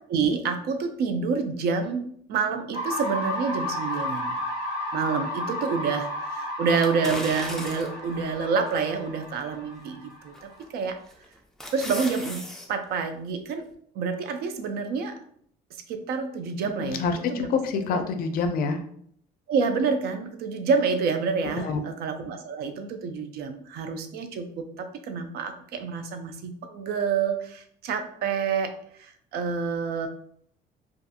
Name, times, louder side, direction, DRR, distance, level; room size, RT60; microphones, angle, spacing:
voice 1, 0.1-4.4 4.9-11.0 11.7-12.4 12.7-13.6 14.0-15.2 15.9-17.0 17.3-17.5 19.5-30.1, right 5 dB, 70° right, 8 dB, 0.4 m, -28 dB
sound 1, 2.7-10.6, left 1 dB, 40° right, 1.1 m, -33 dB
sound 2, 6.8-8.1 8.7-8.8 10.3-10.7 11.1-12.7 13.0-13.1, left 1 dB, 5° left, 0.4 m, -36 dB
voice 2, 16.8-18.8 21.4-21.8, left 5 dB, 60° left, 7 dB, 0.4 m, -27 dB
2.6 x 2.4 x 2.4 m, 0.65 s
cardioid pair, 110°, 17 cm